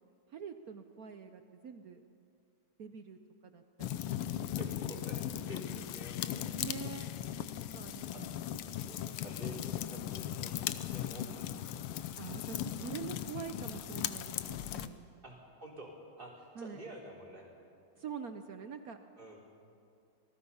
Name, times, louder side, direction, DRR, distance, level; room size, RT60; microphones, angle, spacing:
voice 1, 0.3-2.0 2.8-4.1 6.6-7.1 7.7-8.3 8.6-9.3 11.9-15.0 16.5-16.8 18.0-19.0, right 6 dB, 60° right, 8 dB, 0.9 m, -45 dB
sound 1, 3.8-14.9, left 11 dB, 80° left, 1.6 m, -38 dB
voice 2, 4.5-6.6 8.1-8.2 8.9-10.5 10.8-11.7 15.2-17.5 19.2-19.4, right 1 dB, 25° right, -2 dB, 3.9 m, -49 dB
27.0 x 19.0 x 5.6 m, 2.5 s
omnidirectional pair, 2.4 m